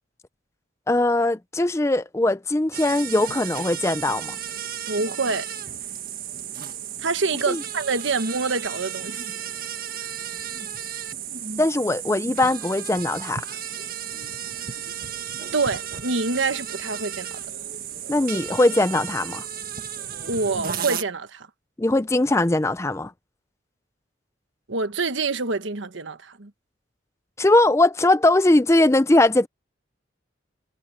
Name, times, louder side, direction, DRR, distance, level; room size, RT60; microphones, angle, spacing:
voice 1, 0.9-4.4 7.5-7.6 11.6-13.4 18.1-19.4 21.8-23.1 27.4-29.5, left 2 dB, 15° left, 0.4 m, -20 dB
sound 1, 2.7-21.0, right 8 dB, 45° right, 1.7 m, -34 dB
voice 2, 4.9-5.5 7.0-9.2 15.5-17.3 20.3-21.5 24.7-26.5, right 3 dB, 75° right, 1.3 m, -26 dB
head